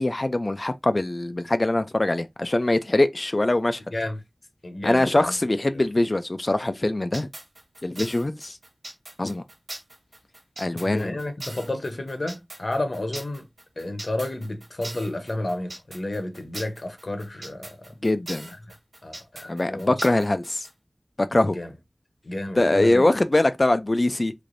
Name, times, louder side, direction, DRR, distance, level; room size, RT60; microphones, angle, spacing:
voice 1, 0.0-3.8 4.8-7.3 7.8-8.6 9.2-9.4 10.6-11.2 18.0-18.5 19.5-20.7 21.3-21.6 22.6-24.3, left 2 dB, 45° left, 0.3 m, -22 dB
voice 2, 4.6-5.3 10.8-13.4 13.8-17.8 19.0-20.0 21.5-21.7 22.2-23.1, left 1 dB, 65° left, 0.8 m, -31 dB
sound 1, 7.1-20.7, right 1 dB, 80° right, 1.2 m, -40 dB
3.3 x 3.3 x 2.6 m
wide cardioid pair, 45°, 0 cm